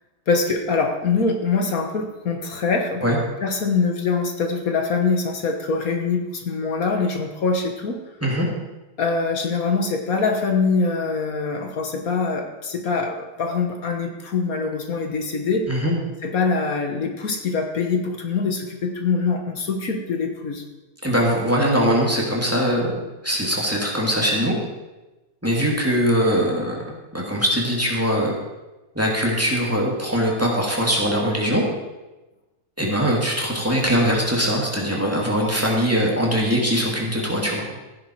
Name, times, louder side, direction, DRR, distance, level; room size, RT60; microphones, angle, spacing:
voice 1, 0.3-8.0 9.0-15.7 16.2-20.6, left 4 dB, 70° left, 4 dB, 1.7 m, -24 dB
voice 2, 21.0-22.9 23.2-24.5 25.4-26.8 27.1-28.3 28.9-31.6 32.8-37.6, equal, 10° right, -2 dB, 2.7 m, -21 dB
15.5 x 10.0 x 4.7 m, 1.1 s
omnidirectional pair, 1.6 m